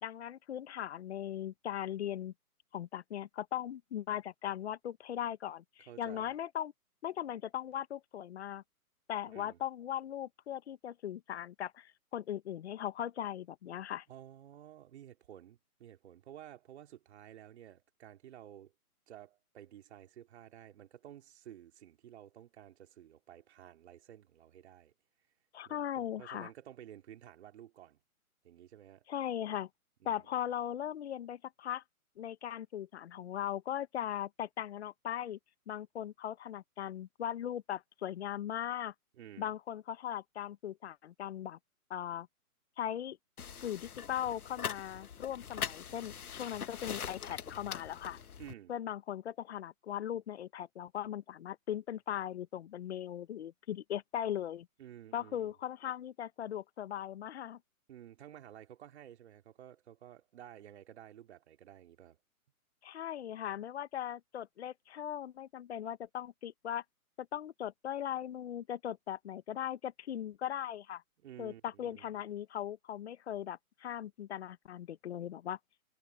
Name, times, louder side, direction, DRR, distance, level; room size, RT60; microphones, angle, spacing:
voice 1, 0.0-2.3 2.7-6.7 7.0-8.6 9.1-14.0 25.5-26.5 29.1-29.7 30.0-31.8 32.2-35.4 35.7-38.9 39.4-41.6 41.9-42.3 42.8-43.2 43.6-48.2 48.7-54.7 55.1-57.6 62.8-66.8 67.2-71.0 71.4-75.6, left 10 dB, 45° left, 1.2 m, -39 dB
voice 2, 5.9-6.3 9.3-9.6 14.1-18.7 19.1-24.9 25.6-28.0 28.4-29.0 30.0-30.2 39.2-39.5 48.4-48.7 54.8-55.5 57.9-62.2 71.2-72.1, right 11 dB, 45° right, 3.2 m, -53 dB
sound 1, 43.4-48.5, left 7 dB, 75° left, 1.5 m, -42 dB
hypercardioid pair, 145°, 45 cm